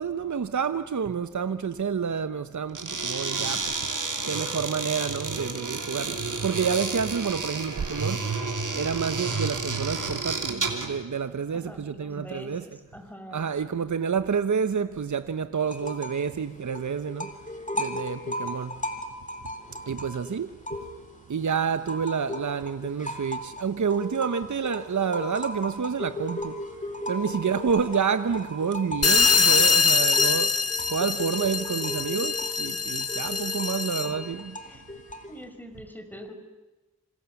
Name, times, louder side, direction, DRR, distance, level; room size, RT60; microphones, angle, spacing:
voice 1, 0.0-3.6 4.3-6.1 6.4-8.2 8.7-12.6 13.3-17.3 17.8-18.7 19.9-20.5 21.3-26.5 27.1-30.5 30.9-34.6, right 6 dB, 70° right, 0.8 m, -28 dB
sound 1, 2.7-11.0, right 4 dB, 85° right, 3.0 m, -31 dB
voice 2, 11.5-13.5 34.0-34.2 34.6-34.8 35.3-36.3, equal, 5° left, 5.0 m, -44 dB
sound 2, 15.7-16.3 16.6-21.2 21.6-35.4, left 1 dB, 25° left, 3.2 m, -37 dB
sound 3, 29.0-34.2, left 4 dB, 55° left, 1.1 m, -23 dB
27.0 x 26.5 x 7.1 m
cardioid pair, 40°, 31 cm